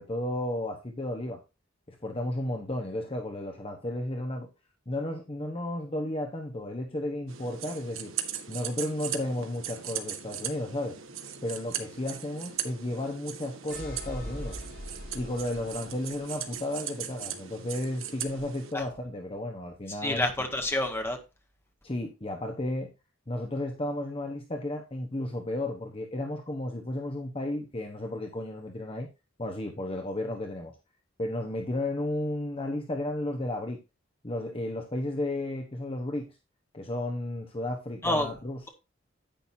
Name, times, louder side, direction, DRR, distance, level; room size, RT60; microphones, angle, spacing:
voice 1, 0.0-1.4 1.9-4.5 4.9-8.1 8.5-11.0 11.4-14.6 15.1-20.3 21.8-22.9 23.3-29.1 29.4-30.8 31.2-33.8 34.2-36.4 36.7-38.7, left 1 dB, 30° left, 3 dB, 1.1 m, -33 dB
sound 1, 7.3-18.7, right 9 dB, 85° right, 1.5 m, -39 dB
sound 2, 13.7-16.6, equal, 55° left, 6.3 m, -41 dB
voice 2, 19.9-21.2 38.0-38.3, left 1 dB, 10° left, 3 dB, 1.8 m, -28 dB
10.5 x 9.1 x 2.8 m, 0.27 s
head